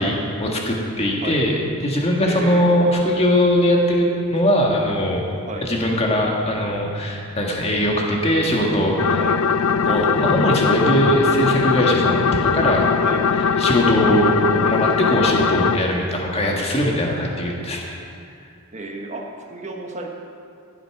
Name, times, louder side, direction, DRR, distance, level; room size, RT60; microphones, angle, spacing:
voice 1, 0.0-1.5 1.8-5.2 5.6-9.2 9.8-12.8 13.6-18.0, equal, 25° left, -1 dB, 1.7 m, -20 dB
voice 2, 2.3-2.8 5.4-5.7 9.1-9.4 13.0-13.3 18.7-20.1, right 2 dB, 30° right, 1 dB, 1.3 m, -32 dB
sound 1, 9.0-15.8, left 6 dB, 65° left, 0.4 m, -20 dB
14.5 x 8.0 x 5.9 m, 2.5 s
head